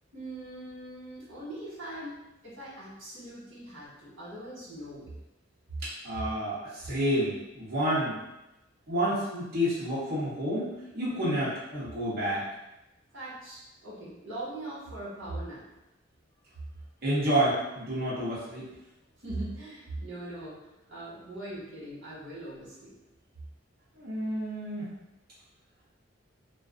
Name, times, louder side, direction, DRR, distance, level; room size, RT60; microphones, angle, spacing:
voice 1, 0.1-2.2 2.4-5.1 13.1-15.6 19.2-22.9, right 1 dB, 80° right, -7 dB, 1.2 m, -41 dB
voice 2, 5.8-8.2 8.9-12.5 17.0-18.7 24.0-24.9, equal, 50° right, -9 dB, 0.7 m, -29 dB
2.4 x 2.3 x 2.4 m, 0.94 s
head